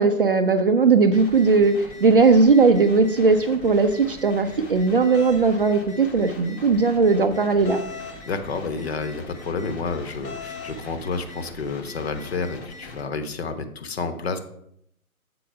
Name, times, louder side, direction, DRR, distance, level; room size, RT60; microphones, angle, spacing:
voice 1, 0.0-7.8, right 4 dB, 40° right, 8 dB, 0.5 m, -18 dB
sound 1, 1.1-13.0, left 2 dB, 15° left, 0.8 m, -42 dB
sound 2, 5.1-5.4 7.6-8.2 10.2-10.8, left 5 dB, 80° left, 1.4 m, -37 dB
voice 2, 8.3-14.4, left 4 dB, 45° left, 9 dB, 0.9 m, -30 dB
7.5 x 4.1 x 5.4 m, 0.72 s
figure-of-eight pair, 135°, 44 cm